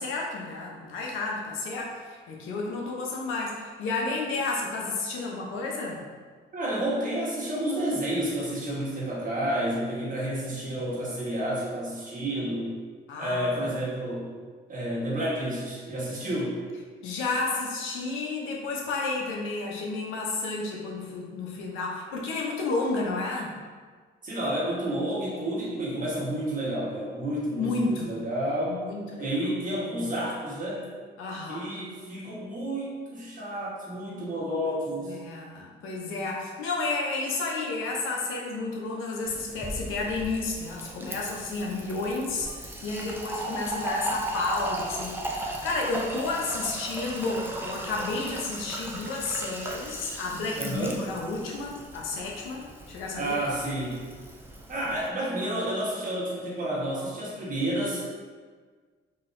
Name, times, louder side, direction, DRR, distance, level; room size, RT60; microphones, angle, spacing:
voice 1, 0.0-6.0 13.1-13.7 17.0-23.6 27.6-28.2 28.7-29.3 31.2-31.7 35.0-53.3, left 3 dB, 85° left, -2 dB, 0.7 m, -31 dB
voice 2, 6.5-12.8 13.2-14.3 14.7-16.5 24.2-28.8 29.2-30.9 31.5-35.2 50.6-51.0 53.2-54.0 54.7-58.0, right 1 dB, 40° right, -6 dB, 1.2 m, -30 dB
Fill (with liquid), 39.2-55.1, right 1 dB, 10° right, 0.4 m, -37 dB
3.9 x 2.8 x 2.5 m, 1.5 s
cardioid pair, 90°, 20 cm